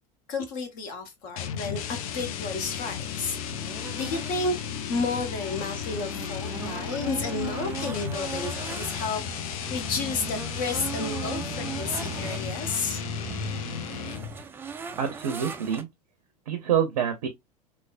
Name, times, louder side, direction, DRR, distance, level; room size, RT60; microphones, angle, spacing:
voice 1, 0.3-4.5 4.9-13.0, left 3 dB, 45° left, 1.0 m, -32 dB
sound 1, 1.4-14.4, left 8 dB, 60° left, 0.4 m, -35 dB
sound 2, 2.6-15.8, right 6 dB, 10° right, 0.3 m, -40 dB
sound 3, 6.6-14.4, equal, 25° right, 0.7 m, -40 dB
voice 2, 15.0-15.9 16.5-17.3, right 8 dB, 65° right, 0.6 m, -26 dB
3.2 x 2.0 x 2.4 m
figure-of-eight pair, 80°, 21 cm